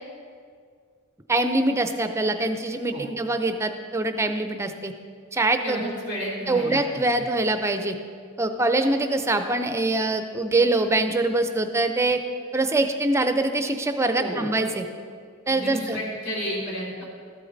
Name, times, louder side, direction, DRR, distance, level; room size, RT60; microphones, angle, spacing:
voice 1, 1.3-4.9 5.3-5.8 6.5-8.0 8.4-12.2 12.5-14.8 15.5-16.0, right 2 dB, 15° right, 7 dB, 0.5 m, -24 dB
voice 2, 5.6-7.3 14.2-14.5 15.4-17.1, equal, 55° left, -4 dB, 3.0 m, -32 dB
13.5 x 8.3 x 4.0 m, 2.1 s
head